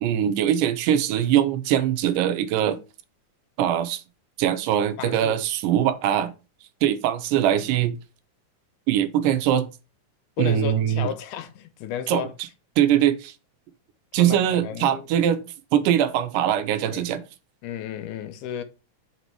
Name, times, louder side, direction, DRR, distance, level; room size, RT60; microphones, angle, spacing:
voice 1, 0.0-2.8 3.6-4.0 4.4-6.3 6.8-8.0 8.9-9.7 10.4-11.1 12.1-12.3 12.8-13.3 14.1-15.4 15.7-17.2, right 10 dB, 90° right, 2.2 m, -22 dB
voice 2, 5.0-5.4 10.4-12.3 14.1-15.1 16.9-17.1 17.6-18.6, left 9 dB, 80° left, 2.1 m, -33 dB
6.1 x 4.0 x 4.6 m
omnidirectional pair, 3.8 m